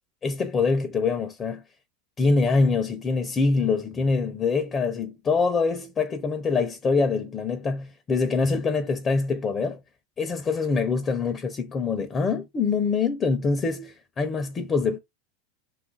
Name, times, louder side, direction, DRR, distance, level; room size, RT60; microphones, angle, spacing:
voice 1, 0.2-1.6 2.2-9.8 10.2-15.0, left 4 dB, 25° left, 0.4 m, -24 dB
2.6 x 2.4 x 3.9 m
supercardioid pair, 115°, 0 cm